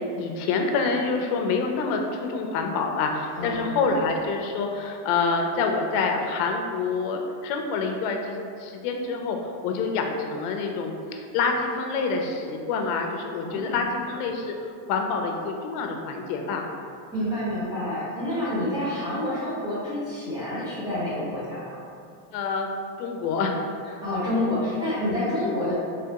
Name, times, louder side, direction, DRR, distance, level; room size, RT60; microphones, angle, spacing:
voice 1, 0.2-16.6 22.3-22.7 23.0-23.7, left 4 dB, 65° left, 3 dB, 0.6 m, -27 dB
voice 2, 3.4-3.9 13.4-13.9 17.1-21.8 24.0-25.7, left 1 dB, 10° right, -11 dB, 1.0 m, -28 dB
3.4 x 3.3 x 2.8 m, 2.4 s
cardioid pair, 165°, 48 cm